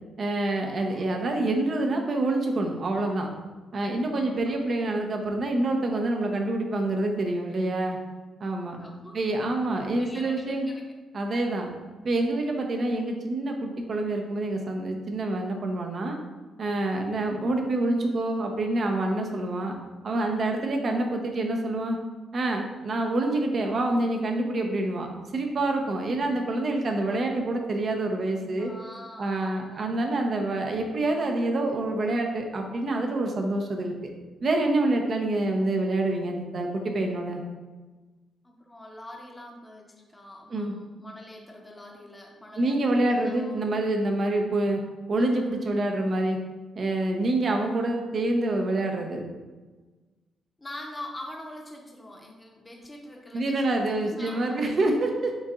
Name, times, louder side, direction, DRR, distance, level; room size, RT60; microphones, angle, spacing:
voice 1, 0.2-3.3 3.7-8.0 8.4-8.8 9.1-10.7 11.1-11.7 12.0-16.2 16.6-19.8 20.0-22.0 22.3-25.1 25.3-28.7 29.2-33.9 34.4-37.4 40.5-40.7 42.6-44.8 45.1-46.4 46.8-49.2 53.3-55.3, right 2 dB, 55° right, 2 dB, 0.8 m, -27 dB
voice 2, 0.7-1.0 4.2-4.5 8.8-9.2 10.0-10.9 28.6-29.9 38.4-43.7 50.6-54.6, left 1 dB, 20° left, 0 dB, 0.9 m, -44 dB
7.9 x 2.7 x 2.4 m, 1.3 s
supercardioid pair, 50°, 0 cm